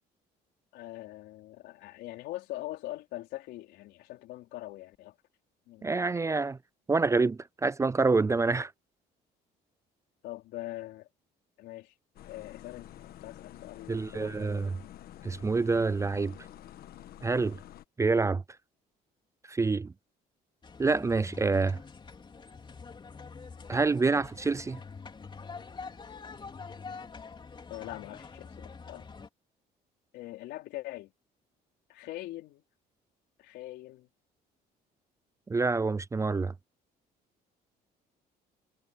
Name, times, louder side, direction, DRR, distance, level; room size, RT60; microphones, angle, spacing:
voice 1, 0.7-5.1 5.7-5.9 10.2-11.1 11.6-11.9 12.2-14.7 27.7-29.1 30.1-31.1 31.9-32.6 33.4-34.1, left 16 dB, 85° left, 4.5 m, -42 dB
voice 2, 5.8-6.6 6.9-8.7 13.9-14.7 15.2-16.3 17.2-17.6 18.0-18.4 19.5-19.9 20.8-21.8 23.7-24.8 35.5-36.5, right 3 dB, 15° right, 0.4 m, -27 dB
sound 1, 12.2-17.9, left 12 dB, 65° left, 1.3 m, -49 dB
sound 2, 20.6-29.3, left 5 dB, 30° left, 3.8 m, -46 dB
cardioid pair, 110°, 17 cm